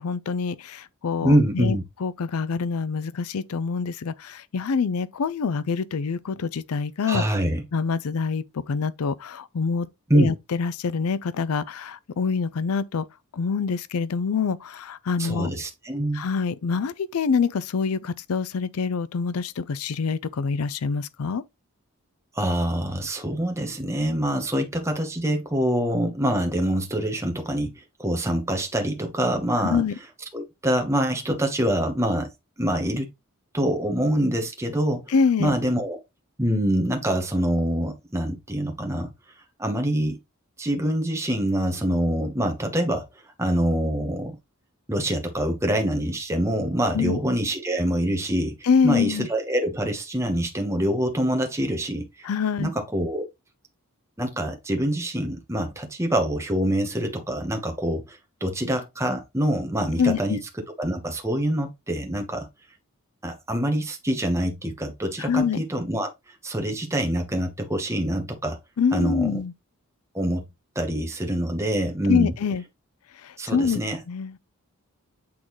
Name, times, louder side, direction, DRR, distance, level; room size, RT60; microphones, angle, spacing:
voice 1, 0.0-7.2 7.7-9.9 10.1-13.1 13.3-15.5 16.1-21.4 29.6-29.9 35.1-35.6 46.9-47.2 48.6-49.3 52.2-52.7 60.0-60.4 65.2-65.6 68.8-69.5 72.0-72.6 73.2-73.8 74.1-74.4, left 5 dB, 75° left, 0.5 m, -25 dB
voice 2, 1.2-1.8 7.0-7.6 10.1-10.3 15.2-16.2 22.3-29.8 30.3-32.3 32.6-33.1 33.5-35.1 35.4-36.0 36.4-39.1 39.6-40.2 40.6-43.1 43.4-44.3 44.9-48.5 48.8-52.3 52.6-53.3 54.2-60.4 60.8-62.5 63.2-66.1 66.4-68.6 68.9-69.4 70.1-70.4 70.7-72.3 73.4-74.0, right 1 dB, 10° right, 1.1 m, -25 dB
8.5 x 3.8 x 3.1 m
head